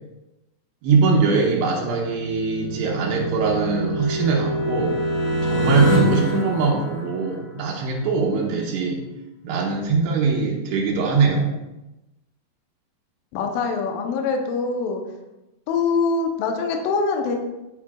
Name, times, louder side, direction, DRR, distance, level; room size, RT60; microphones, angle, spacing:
voice 1, 0.8-5.0 5.4-9.0 9.4-11.5, right 4 dB, 85° right, -2 dB, 3.0 m, -22 dB
sound 1, 1.9-7.7, right 1 dB, 55° left, 2.4 m, -25 dB
voice 2, 13.3-15.0 15.7-17.4, left 4 dB, 75° left, 3 dB, 2.2 m, -23 dB
8.3 x 6.5 x 2.4 m, 0.98 s
omnidirectional pair, 4.7 m